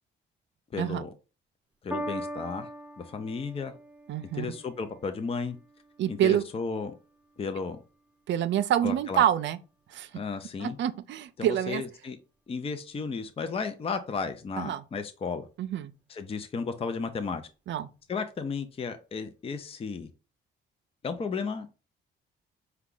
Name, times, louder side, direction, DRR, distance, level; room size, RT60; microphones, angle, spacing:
voice 1, 0.7-1.1 1.8-2.7 3.0-3.7 4.3-5.6 6.1-6.9 7.4-7.8 8.8-9.2 10.1-10.8 11.4-12.2 12.5-15.5 16.1-17.4 18.1-20.1 21.0-21.7, left 5 dB, 30° left, 0.5 m, -33 dB
Piano, 1.9-8.5 9.3-9.4, equal, 5° right, 0.8 m, -42 dB
voice 2, 4.1-4.5 6.0-6.4 8.3-9.6 9.9-10.1 10.6-11.8 14.6-14.8 15.6-15.9 17.7-17.9, right 11 dB, 65° right, 0.5 m, -27 dB
4.6 x 2.3 x 3.7 m
cardioid pair, 90°, 20 cm